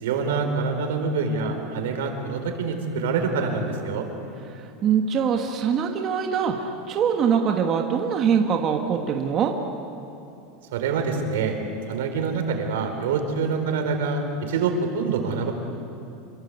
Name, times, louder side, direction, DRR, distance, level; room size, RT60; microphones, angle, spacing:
voice 1, 0.0-4.1 10.7-11.6 11.9-15.5, right 5 dB, 85° right, 5 dB, 4.2 m, -26 dB
voice 2, 4.5-9.5, right 7 dB, 25° right, 3 dB, 1.4 m, -23 dB
26.5 x 23.0 x 8.1 m, 2.7 s
supercardioid pair, 175°, 0 cm